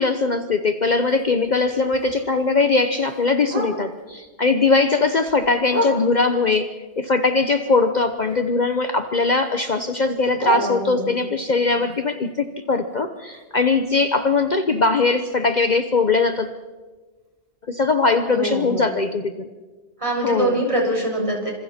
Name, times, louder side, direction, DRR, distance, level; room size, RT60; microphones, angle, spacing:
voice 1, 0.0-16.5 17.7-19.5 20.2-20.5, left 3 dB, 45° left, 8 dB, 1.0 m, -20 dB
Bark, 1.0-4.2 4.6-6.5 6.9-8.8 9.0-11.3 11.8-15.7 16.0-16.1 16.4-16.8 17.3-17.4 17.7-17.8 18.3-18.4, equal, 65° right, 5.5 m, -34 dB
voice 2, 10.5-11.1 18.3-18.9 20.0-21.5, right 1 dB, 30° right, -1 dB, 6.4 m, -24 dB
27.0 x 26.5 x 4.4 m, 1.3 s
omnidirectional pair, 1.1 m